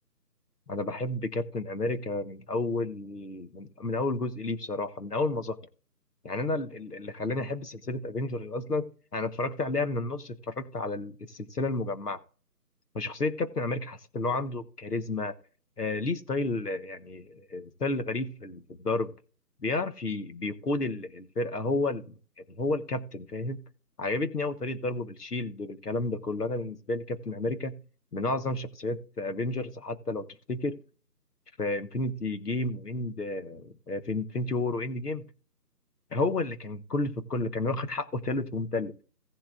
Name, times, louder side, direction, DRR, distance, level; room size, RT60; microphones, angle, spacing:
voice 1, 0.7-5.6 6.2-8.9 9.1-12.2 12.9-15.3 15.8-19.1 19.6-22.0 22.6-23.6 24.0-27.7 28.1-30.8 31.6-35.2 36.1-38.9, left 2 dB, 70° left, 10 dB, 1.4 m, -31 dB
17.0 x 7.2 x 2.5 m, 0.40 s
figure-of-eight pair, 160°, 49 cm